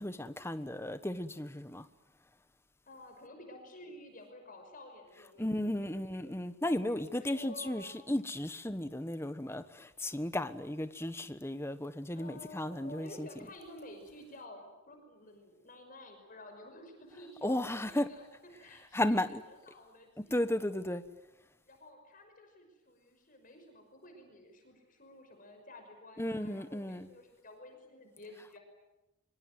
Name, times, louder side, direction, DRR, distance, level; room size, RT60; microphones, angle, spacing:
voice 1, 0.0-1.9 5.4-13.3 17.4-18.1 18.9-19.4 20.2-21.0 26.2-27.1, left 1 dB, 10° left, 1.2 m, -34 dB
voice 2, 2.9-5.9 6.1-6.4 6.9-8.0 12.1-18.3 18.6-20.4 21.6-28.6, left 1 dB, 40° left, 5.8 m, -52 dB
25.0 x 24.0 x 9.4 m
head